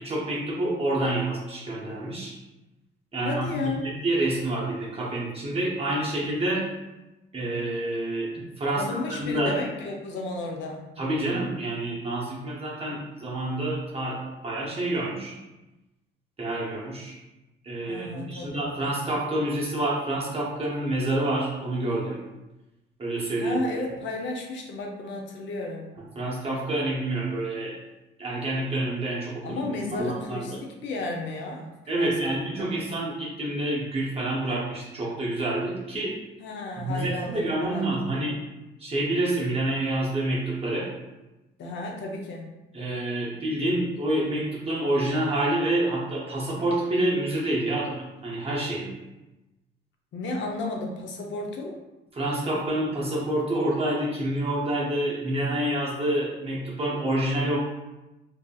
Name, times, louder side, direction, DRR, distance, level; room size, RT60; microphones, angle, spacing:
voice 1, 0.0-2.3 3.1-6.6 7.3-9.5 11.0-15.3 16.4-17.2 17.6-22.2 23.0-23.6 26.2-27.8 28.2-29.6 29.9-30.6 31.9-36.1 36.8-38.4 38.8-40.9 42.7-48.9 52.1-57.6, right 1 dB, 30° right, -5 dB, 0.7 m, -28 dB
voice 2, 3.2-3.9 8.7-10.9 17.9-18.7 23.4-25.9 29.4-32.7 36.4-38.3 41.6-42.5 50.1-51.8, left 2 dB, 70° left, 1 dB, 0.6 m, -33 dB
2.6 x 2.5 x 2.3 m, 1.0 s
cardioid pair, 90°, 20 cm